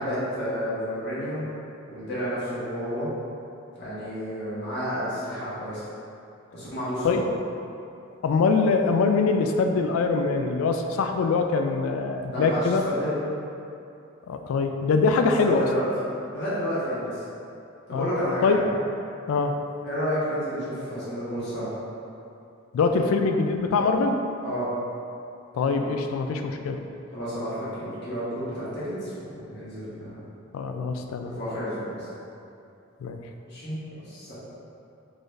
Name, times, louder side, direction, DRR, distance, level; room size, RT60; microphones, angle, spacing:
voice 1, 0.0-1.4 1.9-3.1 3.8-5.8 6.5-7.2 12.3-13.2 15.2-15.9 16.3-17.2 17.9-18.6 19.8-21.7 24.4-24.7 27.1-30.2 31.2-32.1 33.5-34.3, equal, 55° left, -10 dB, 1.3 m, -30 dB
voice 2, 8.2-12.8 14.3-15.7 17.9-18.1 18.4-18.6 19.3-19.6 22.7-24.2 25.5-26.8 30.5-31.3 33.0-33.2, left 4 dB, 80° left, 6 dB, 0.3 m, -23 dB
3.8 x 2.6 x 3.2 m, 2.7 s
head